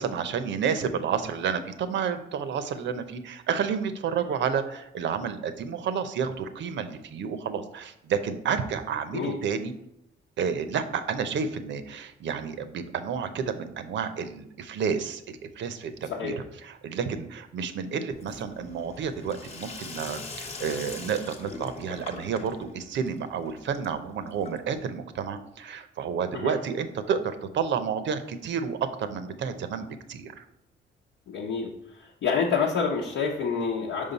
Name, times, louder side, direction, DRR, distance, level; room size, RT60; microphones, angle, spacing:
voice 1, 0.0-9.7 10.4-15.9 16.2-16.3 16.6-30.4, right 6 dB, 65° right, 10 dB, 0.7 m, -30 dB
Sink (filling or washing), 18.1-24.9, left 4 dB, 30° left, 0.9 m, -42 dB
voice 2, 31.3-31.7 32.0-34.1, left 5 dB, 75° left, -2 dB, 0.9 m, -28 dB
5.5 x 5.0 x 4.0 m, 0.82 s
cardioid pair, 90°, 20 cm